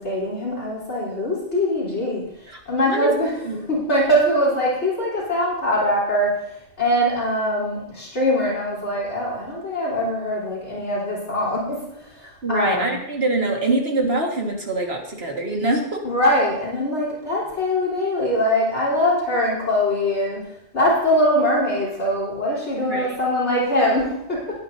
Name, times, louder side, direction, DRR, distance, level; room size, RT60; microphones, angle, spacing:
voice 1, 0.0-3.3 3.7-6.4 6.8-13.0 16.0-20.4 20.7-24.6, left 1 dB, 65° left, -6 dB, 4.2 m, -22 dB
voice 2, 2.5-3.1 3.4-3.6 12.4-16.0 22.9-23.2, right 2 dB, 55° right, 1 dB, 2.1 m, -24 dB
20.0 x 9.4 x 2.8 m, 0.77 s
omnidirectional pair, 1.2 m